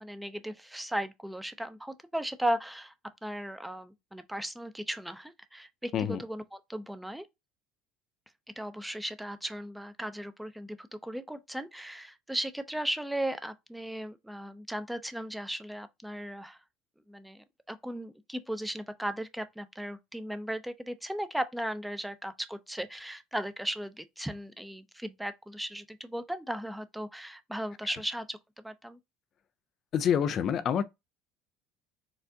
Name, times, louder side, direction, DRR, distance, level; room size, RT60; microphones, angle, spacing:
voice 1, 0.0-2.9 3.2-7.3 8.6-16.6 17.1-29.0, right 1 dB, 5° right, 0.5 m, -36 dB
voice 2, 29.9-30.8, left 8 dB, 50° left, 0.3 m, -27 dB
4.4 x 2.5 x 2.7 m
hypercardioid pair, 70°, 0 cm